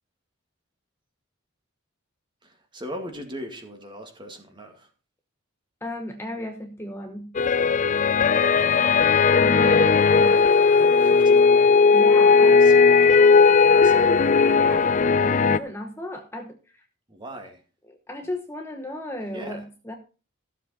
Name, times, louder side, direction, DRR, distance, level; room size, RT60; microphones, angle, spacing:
voice 1, 2.4-4.9 10.7-11.7 12.3-14.1 17.1-17.6 19.3-19.7, equal, 20° right, 4 dB, 2.1 m, -39 dB
voice 2, 5.8-7.3 9.4-10.5 11.9-12.5 14.4-15.0 15.2-16.6 17.9-20.0, left 1 dB, 10° left, 4 dB, 1.0 m, -34 dB
sound 1, 7.3-15.6, left 5 dB, 35° left, 0.4 m, -17 dB
14.5 x 7.4 x 4.2 m, 0.34 s
head